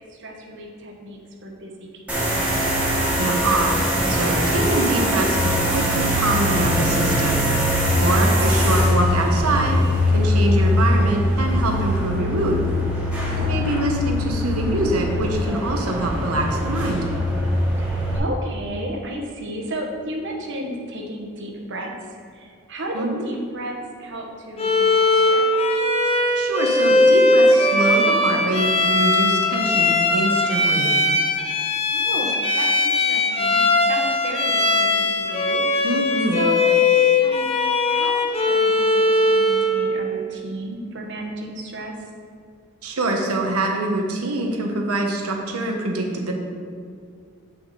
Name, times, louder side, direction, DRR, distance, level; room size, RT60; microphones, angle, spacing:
voice 1, 0.1-2.4 13.3-13.7 17.8-25.5 31.9-36.0 36.3-41.9, right 1 dB, 55° right, 1 dB, 1.2 m, -33 dB
sound 1, 2.1-18.2, left 1 dB, 5° right, 1.7 m, -22 dB
voice 2, 3.2-3.8 4.1-9.8 10.1-12.7 13.1-17.0 22.9-23.2 26.3-30.9 35.8-36.4 42.8-46.3, right 2 dB, 85° right, 1 dB, 1.2 m, -24 dB
Bowed string instrument, 24.6-39.8, left 2 dB, 25° left, 0.7 m, -19 dB
8.3 x 5.7 x 4.2 m, 2.2 s
head